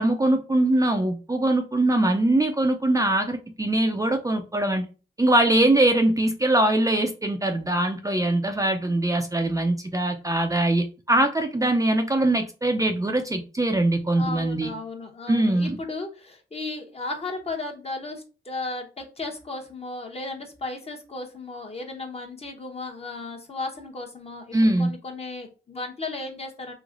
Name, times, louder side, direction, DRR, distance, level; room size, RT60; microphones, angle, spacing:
voice 1, 0.0-4.8 5.2-14.7 15.3-15.8 24.5-24.9, right 1 dB, 20° right, 5 dB, 0.5 m, -22 dB
voice 2, 14.1-26.7, left 3 dB, 35° left, 2 dB, 1.0 m, -35 dB
3.0 x 2.8 x 2.5 m, 0.33 s
cardioid pair, 70°, 19 cm